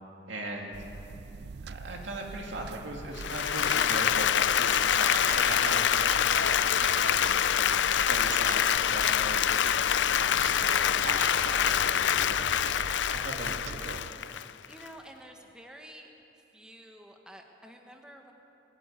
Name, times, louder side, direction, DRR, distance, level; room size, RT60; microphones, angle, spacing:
voice 1, 0.3-0.8 1.6-9.5 10.1-14.0, right 2 dB, 75° right, 0 dB, 2.5 m, -39 dB
sound 1, 0.7-14.1, right 4 dB, 60° right, 0.4 m, -44 dB
Applause, 3.1-14.9, left 9 dB, 70° left, 0.5 m, -26 dB
Scissors, 3.3-4.4 4.7-5.8 6.3-7.2 7.6-8.7 9.0-9.1, right 3 dB, 40° right, 2.7 m, -41 dB
voice 2, 14.7-16.1 16.5-18.3, equal, 5° right, 2 dB, 1.3 m, -50 dB
21.0 x 13.5 x 9.4 m, 2.9 s
head